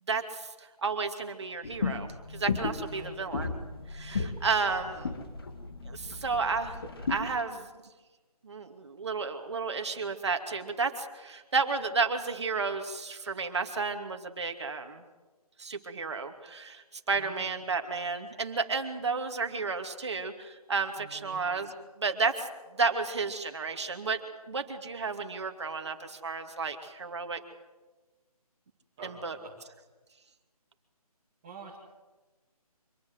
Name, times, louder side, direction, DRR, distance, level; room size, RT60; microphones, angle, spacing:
voice 1, 0.1-0.5 0.8-3.5 3.9-5.0 5.9-6.7 7.1-7.7 8.4-15.0 15.6-21.7 22.0-22.5 22.8-24.2 24.5-27.4 29.0-29.4, right 4 dB, 45° right, 5 dB, 2.6 m, -32 dB
sound 1, 1.6-7.4, left 4 dB, 35° left, 2.1 m, -35 dB
voice 2, 2.8-3.2 4.7-5.2 17.1-17.4 21.0-21.5 29.0-29.6 31.4-31.8, right 4 dB, 15° right, -3 dB, 2.4 m, -48 dB
25.5 x 20.0 x 8.0 m, 1.2 s
hypercardioid pair, 175°, 20 cm